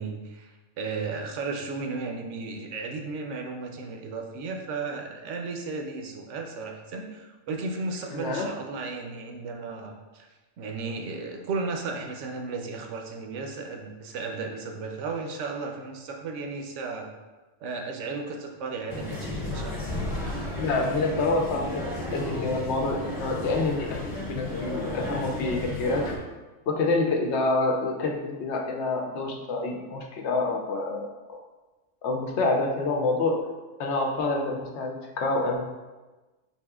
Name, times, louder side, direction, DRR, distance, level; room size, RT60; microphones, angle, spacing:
voice 1, 0.0-10.3 10.6-17.1 17.6-20.0, right 4 dB, 75° right, 2 dB, 0.9 m, -34 dB
voice 2, 8.1-8.5 20.6-26.1 26.7-31.4 32.0-33.4 33.8-35.6, left 3 dB, 70° left, 1 dB, 0.8 m, -27 dB
sound 1, 18.9-26.2, left 2 dB, 20° left, 0.9 m, -33 dB
5.4 x 2.7 x 2.3 m, 1.2 s
omnidirectional pair, 1.3 m